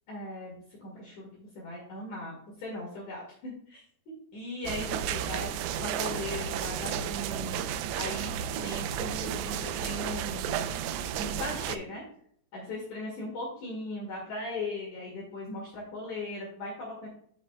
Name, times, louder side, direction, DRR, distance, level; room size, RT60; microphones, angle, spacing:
voice 1, 0.1-3.8 4.3-5.5 5.8-7.6 8.0-10.7 11.2-12.0 12.5-17.1, left 2 dB, 55° left, -4 dB, 2.9 m, -38 dB
sound 1, 4.6-11.8, right 9 dB, 85° right, 2.2 m, -33 dB
9.8 x 7.1 x 2.2 m, 0.63 s
omnidirectional pair, 4.8 m